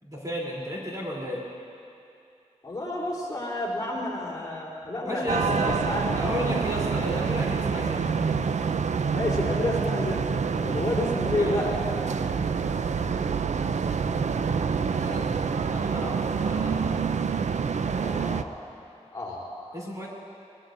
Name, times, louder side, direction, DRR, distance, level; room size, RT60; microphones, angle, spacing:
voice 1, 0.0-1.4 5.0-5.8 6.2-8.1 11.3-11.6 14.9-15.2 15.6-16.8 19.7-20.1, left 1 dB, 30° right, -5 dB, 3.3 m, -33 dB
voice 2, 2.6-6.1 9.1-10.4 10.6-11.7 18.0-18.6 19.1-19.8, left 1 dB, 30° left, -6 dB, 3.5 m, -30 dB
sound 1, 5.3-18.4, right 6 dB, 80° right, 0.4 m, -27 dB
21.5 x 20.0 x 2.6 m, 2.7 s
wide cardioid pair, 85°, 12 cm